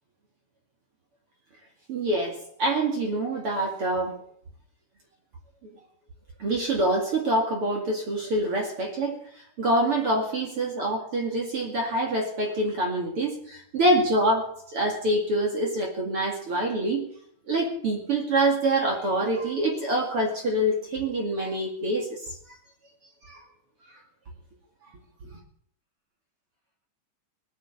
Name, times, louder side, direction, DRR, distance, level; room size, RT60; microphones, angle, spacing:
voice 1, 1.9-4.1 6.4-17.1 17.5-22.4 23.2-23.4, right 1 dB, 40° right, 0 dB, 2.3 m, -26 dB
20.5 x 8.7 x 7.1 m, 0.64 s
omnidirectional pair, 5.3 m